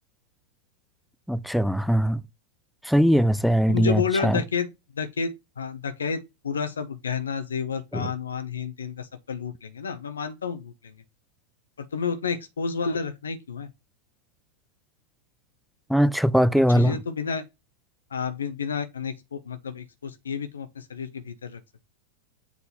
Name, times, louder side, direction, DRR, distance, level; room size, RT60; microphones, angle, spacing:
voice 1, 1.3-2.2 2.8-4.4 7.9-8.1 15.9-17.0, equal, ahead, 0.4 m, -21 dB
voice 2, 3.7-4.7 5.0-10.9 11.8-13.7 16.7-17.4 18.1-21.6, left 5 dB, 70° left, 0.8 m, -30 dB
7.2 x 3.9 x 4.2 m
figure-of-eight pair, 90°, 0 cm